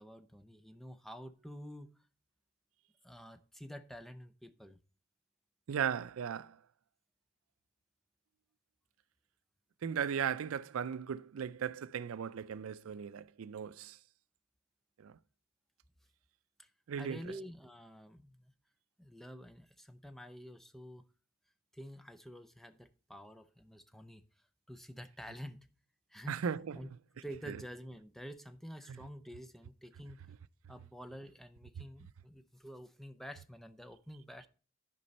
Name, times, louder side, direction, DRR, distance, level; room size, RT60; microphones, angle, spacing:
voice 1, 0.0-1.9 3.0-4.8 16.6-16.7 17.0-18.5 19.0-21.0 21.7-24.2 24.7-25.7 26.1-26.4 26.7-26.9 27.2-30.2 30.7-34.5, equal, ahead, 0.5 m, -49 dB
voice 2, 5.7-6.5 9.8-13.9 15.0-15.1 16.9-17.2 26.3-26.8, right 7 dB, 90° right, 0.4 m, -36 dB
11.0 x 5.2 x 4.1 m
head